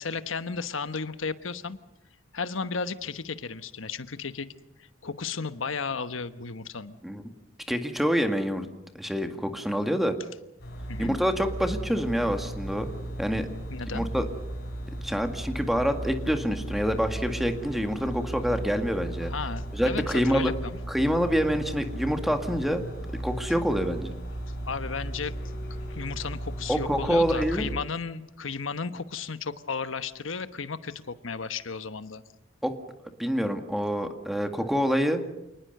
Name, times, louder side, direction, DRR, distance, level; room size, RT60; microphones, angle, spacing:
voice 1, 0.0-1.8 2.3-4.5 5.0-7.0 10.9-11.2 13.7-14.1 19.2-20.8 24.7-25.3 25.9-32.2, left 5 dB, 80° left, 12 dB, 1.2 m, -34 dB
voice 2, 7.7-8.7 9.0-10.1 11.0-12.9 13.2-13.5 13.9-14.3 15.0-19.3 19.7-20.5 20.9-22.8 23.2-24.1 26.7-27.7 32.6-32.7 33.2-35.2, equal, ahead, 6 dB, 1.9 m, -26 dB
sound 1, 10.6-27.7, right 1 dB, 55° left, 6.9 m, -36 dB
28.0 x 19.5 x 6.7 m, 0.88 s
head